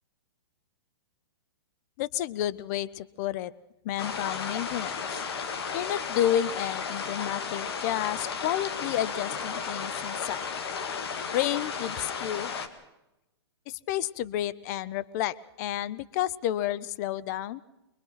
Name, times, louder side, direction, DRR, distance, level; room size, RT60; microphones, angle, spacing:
voice 1, 2.0-3.5 3.8-5.2 5.7-10.5 11.3-12.5 13.7-17.6, left 12 dB, 40° left, 18 dB, 0.8 m, -31 dB
sound 1, 4.0-12.7, left 6 dB, 65° left, 2.1 m, -34 dB
24.5 x 21.0 x 5.8 m, 0.93 s
hypercardioid pair, 145°, 14 cm